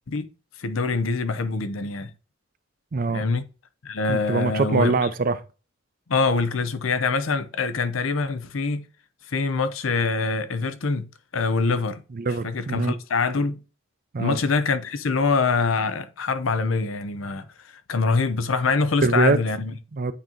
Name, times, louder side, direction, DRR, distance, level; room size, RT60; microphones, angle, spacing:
voice 1, 0.6-2.1 3.1-3.4 3.8-5.1 6.1-8.9 9.3-11.1 11.3-12.0 12.4-13.6 14.2-19.7, left 4 dB, 80° left, 0.7 m, -24 dB
voice 2, 2.9-3.3 4.1-5.4 12.1-12.9 14.1-14.4 19.0-19.4 19.9-20.1, right 3 dB, 45° right, 0.5 m, -23 dB
8.6 x 2.9 x 3.8 m
head